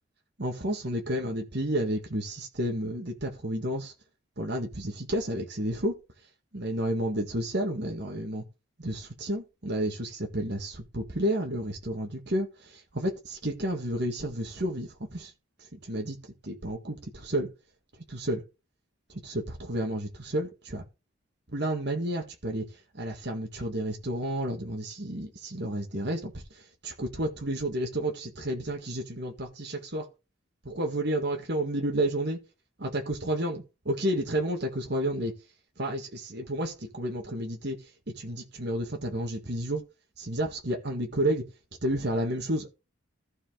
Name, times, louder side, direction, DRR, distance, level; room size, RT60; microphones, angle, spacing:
voice 1, 0.4-3.9 4.4-5.9 6.5-8.4 8.8-15.3 15.6-16.2 16.4-17.5 18.1-18.4 19.1-20.8 21.5-22.6 22.9-30.1 30.6-32.4 32.8-35.3 35.8-37.8 38.1-39.8 40.2-41.4 41.8-42.7, right 1 dB, 50° right, 1.7 m, -31 dB
14.5 x 4.9 x 3.8 m
head